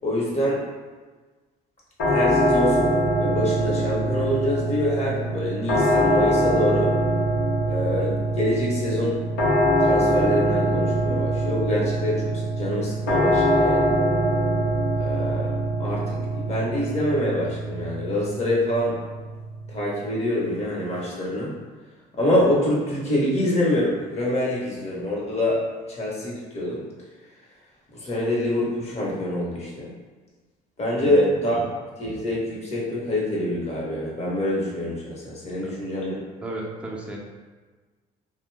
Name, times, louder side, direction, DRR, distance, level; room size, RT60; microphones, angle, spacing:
voice 1, 0.0-0.6 2.1-2.9 3.2-6.9 7.7-9.2 9.8-13.9 15.0-19.0 19.7-21.5 22.2-25.6 25.9-26.8 27.9-29.9 30.8-36.2, left 1 dB, 40° left, -4 dB, 1.0 m, -25 dB
sound 1, 2.0-20.9, right 1 dB, 80° left, 0.9 m, -23 dB
voice 2, 31.0-31.3 35.6-35.8 36.4-37.2, right 1 dB, 5° right, -3 dB, 0.5 m, -34 dB
2.7 x 2.1 x 3.3 m, 1.4 s
cardioid pair, 110°, 17 cm